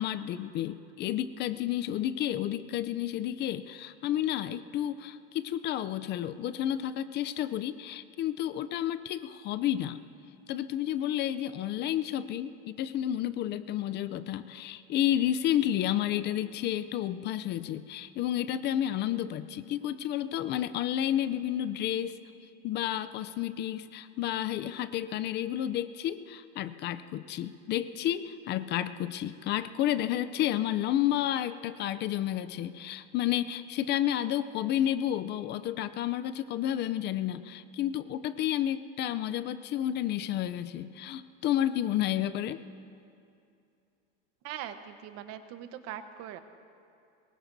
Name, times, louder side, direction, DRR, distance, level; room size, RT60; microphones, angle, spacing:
voice 1, 0.0-10.0 10.5-22.2 22.6-42.6, left 11 dB, 35° left, 13 dB, 0.5 m, -31 dB
voice 2, 44.4-46.4, right 10 dB, 50° right, 9 dB, 1.1 m, -41 dB
23.5 x 22.0 x 2.7 m, 2.5 s
supercardioid pair, 140°, 30 cm